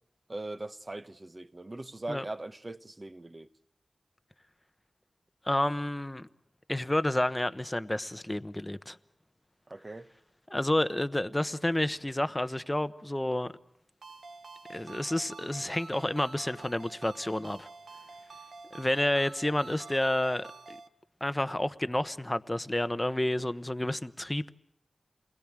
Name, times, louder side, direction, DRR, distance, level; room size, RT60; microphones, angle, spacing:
voice 1, 0.3-3.5 9.7-10.1, right 2 dB, 30° right, 1.1 m, -40 dB
voice 2, 5.5-6.3 6.7-9.0 10.5-13.5 14.7-17.7 18.7-20.5 21.2-24.5, left 1 dB, 15° left, 1.0 m, -30 dB
Ringtone, 14.0-20.9, right 3 dB, 75° right, 1.5 m, -48 dB
29.0 x 21.0 x 7.5 m
wide cardioid pair, 105°, 0 cm